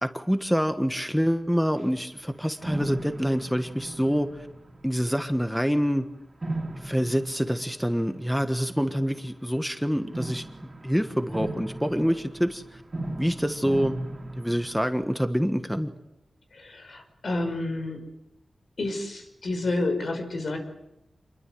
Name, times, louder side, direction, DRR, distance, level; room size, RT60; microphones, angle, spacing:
voice 1, 0.0-4.5 4.8-6.0 6.8-10.4 10.8-12.8 13.2-13.9 14.4-15.9, equal, ahead, 7 dB, 1.5 m, -26 dB
sound 1, 1.8-1.9 2.6-5.4 6.4-8.5 10.1-15.1, right 1 dB, 35° right, 3.4 m, -37 dB
voice 2, 16.5-18.0 18.8-20.6, left 2 dB, 65° left, 5 dB, 5.7 m, -30 dB
27.5 x 22.0 x 7.8 m, 0.89 s
wide cardioid pair, 100°, 0 cm